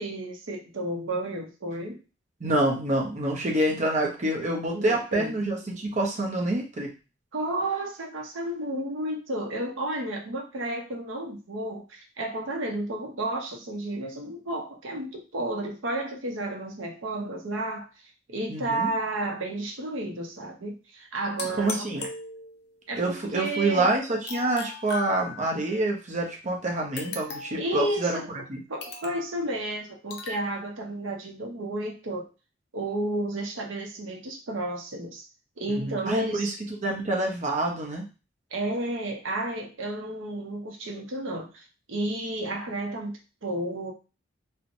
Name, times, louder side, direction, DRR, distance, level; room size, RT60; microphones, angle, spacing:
voice 1, 0.0-2.0 4.7-5.3 7.3-17.9 18.3-22.1 22.9-23.9 27.5-28.3 28.7-32.3 32.7-35.2 35.6-36.5 38.5-43.9, right 1 dB, 85° right, 2 dB, 0.7 m, -32 dB
voice 2, 2.4-6.9 18.5-18.9 21.6-22.0 23.0-28.2 28.5-28.6 35.7-36.5 36.8-38.0, right 2 dB, 40° right, 0 dB, 0.7 m, -27 dB
sound 1, 21.4-22.8 24.3-25.7 27.0-27.7 28.8-29.3 30.1-30.5, left 4 dB, 60° left, 0.6 m, -38 dB
2.9 x 2.1 x 2.5 m, 0.32 s
head